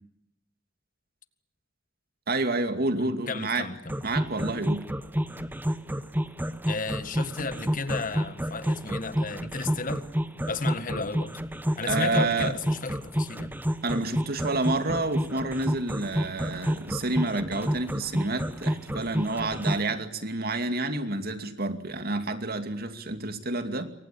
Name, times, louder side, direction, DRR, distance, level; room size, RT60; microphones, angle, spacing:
voice 1, 2.3-3.7 4.0-4.9 11.8-12.5 13.8-23.9, right 2 dB, 55° right, 8 dB, 2.5 m, -29 dB
voice 2, 2.9-3.9 6.7-10.0 10.4-11.4 11.8-13.5, left 3 dB, 45° left, 11 dB, 1.9 m, -33 dB
sound 1, 3.9-19.9, equal, 10° right, 1.3 m, -29 dB
28.0 x 24.0 x 8.7 m, 0.78 s
head